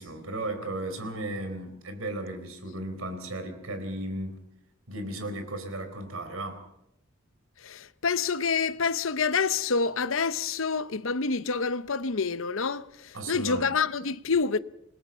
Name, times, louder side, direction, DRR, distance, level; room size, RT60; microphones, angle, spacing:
voice 1, 0.0-4.4 4.9-6.6 13.1-13.7, right 1 dB, 85° right, 4.2 m, -35 dB
voice 2, 7.6-14.6, left 5 dB, 70° left, 0.9 m, -27 dB
27.5 x 20.5 x 5.7 m
head